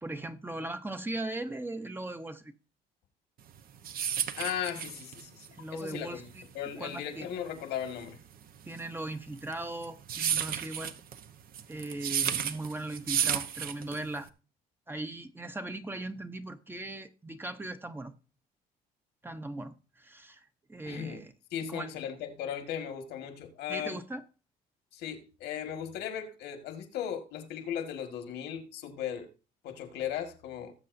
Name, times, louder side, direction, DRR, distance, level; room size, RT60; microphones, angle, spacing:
voice 1, 0.0-2.5 5.5-6.4 6.8-7.3 8.7-10.9 11.7-14.3 14.9-18.1 19.2-21.3 21.7-21.9 23.7-24.2, right 2 dB, 10° right, 0.8 m, -39 dB
sound 1, 3.5-14.3, right 9 dB, 60° right, 0.9 m, -33 dB
voice 2, 4.3-6.3 6.5-8.2 20.9-21.2 21.5-24.0 24.9-29.3 29.6-30.7, left 9 dB, 85° left, 1.8 m, -37 dB
18.5 x 7.5 x 2.6 m
cardioid pair, 110°, 17 cm